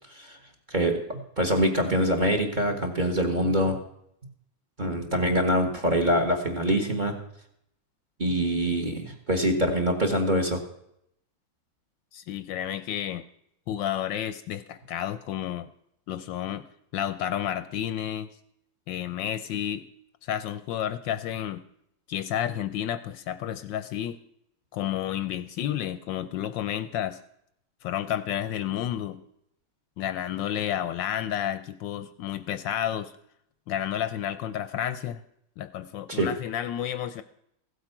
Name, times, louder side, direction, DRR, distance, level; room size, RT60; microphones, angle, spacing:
voice 1, 0.7-3.8 4.8-7.1 8.2-10.6 36.1-36.3, equal, 25° right, 5 dB, 1.4 m, -24 dB
voice 2, 12.1-13.2 13.7-15.7 16.1-16.6 16.9-18.3 18.9-19.8 20.2-21.6 22.1-24.2 24.7-27.2 27.8-29.2 30.0-33.1 33.7-35.2 35.6-37.2, left 10 dB, 75° left, 13 dB, 1.2 m, -31 dB
15.5 x 8.2 x 5.9 m, 0.75 s
omnidirectional pair, 2.2 m